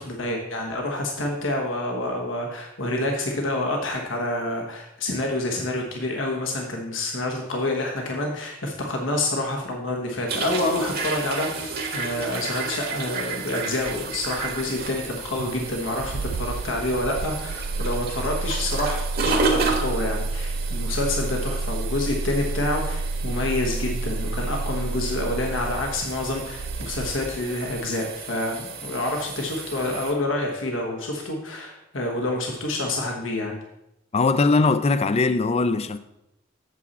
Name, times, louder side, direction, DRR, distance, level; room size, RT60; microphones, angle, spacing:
voice 1, 0.0-33.6, left 1 dB, 90° left, 1.3 m, -28 dB
sound 1, 10.3-30.1, right 4 dB, 50° right, 1.4 m, -32 dB
Engine starting, 13.9-27.9, right 3 dB, 80° right, 0.4 m, -30 dB
voice 2, 34.1-36.0, left 3 dB, 35° left, 0.4 m, -20 dB
8.2 x 7.3 x 4.2 m
head